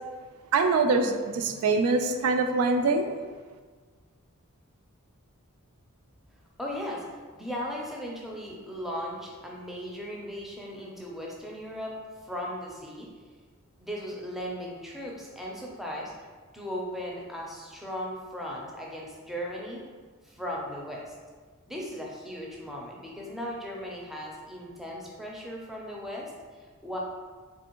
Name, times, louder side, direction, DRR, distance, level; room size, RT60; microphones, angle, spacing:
voice 1, 0.5-3.1, right 3 dB, 75° right, 5 dB, 0.3 m, -24 dB
voice 2, 6.6-7.0 7.3-12.0 12.2-13.1 13.8-16.1 16.5-19.8 20.2-21.1 21.7-26.3 26.6-27.0, equal, ahead, -3 dB, 0.4 m, -37 dB
3.4 x 3.3 x 2.9 m, 1.5 s
head